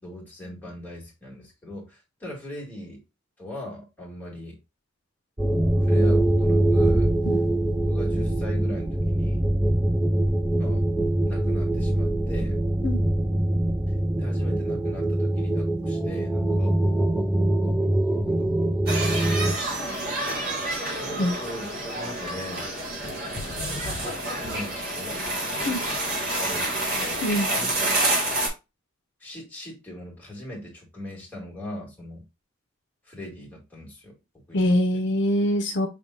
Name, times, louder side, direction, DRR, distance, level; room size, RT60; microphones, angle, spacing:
voice 1, 0.0-3.0 3.4-4.6 5.8-7.1 7.9-9.4 10.6-10.8 11.3-12.6 14.2-16.7 18.3-18.8 20.9-22.7 23.7-23.9 24.4-25.3 26.3-27.3 27.5-28.0 29.2-32.2 33.0-34.7 34.9-35.0, left 1 dB, 10° left, 1.9 m, -40 dB
sound 1, 5.4-19.5, right 1 dB, 5° right, 0.4 m, -23 dB
sound 2, 18.9-28.5, right 1 dB, 50° right, 1.9 m, -28 dB
voice 2, 27.2-27.5 34.5-35.9, equal, 60° left, 0.7 m, -23 dB
5.1 x 3.5 x 2.6 m
head